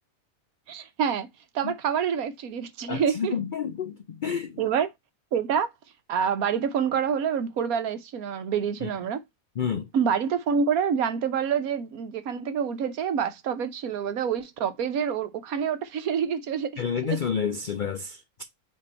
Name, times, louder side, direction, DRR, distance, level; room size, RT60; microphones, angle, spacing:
voice 1, 0.7-1.3 1.5-3.3 4.6-4.9 5.3-5.7 6.1-9.2 9.9-17.2, right 7 dB, 75° right, 1.3 m, -27 dB
voice 2, 2.9-4.6 8.8-8.9 9.6-9.9 16.8-18.2, left 7 dB, 90° left, 0.4 m, -29 dB
7.3 x 3.1 x 4.2 m
omnidirectional pair, 1.5 m